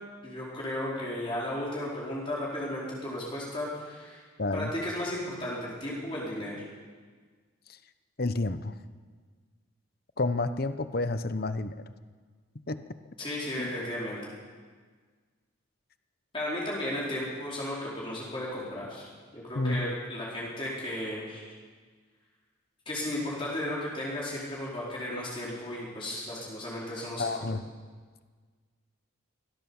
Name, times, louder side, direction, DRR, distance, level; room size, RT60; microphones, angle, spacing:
voice 1, 0.2-4.2 4.5-6.6 13.2-14.2 16.3-19.1 19.3-21.5 22.9-27.5, left 1 dB, 25° left, -6 dB, 4.6 m, -34 dB
voice 2, 4.4-4.7 8.2-8.8 10.2-11.9 12.7-12.8 13.6-13.7 19.5-20.0 27.2-27.6, left 2 dB, 45° left, 11 dB, 0.9 m, -30 dB
23.5 x 17.0 x 7.2 m, 1.6 s
head